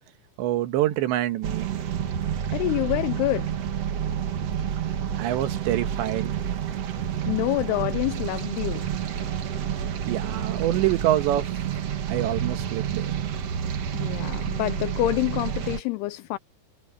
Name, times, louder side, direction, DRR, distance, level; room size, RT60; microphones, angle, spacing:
voice 1, 0.4-1.7 5.2-6.3 10.1-11.5 12.1-13.2, right 13 dB, 85° right, 3.6 m, -25 dB
sound 1, 1.4-15.8, right 9 dB, 70° right, 1.5 m, -29 dB
voice 2, 2.5-3.6 7.3-8.9 13.9-16.4, left 17 dB, 80° left, 2.4 m, -27 dB
omnidirectional pair, 5.1 m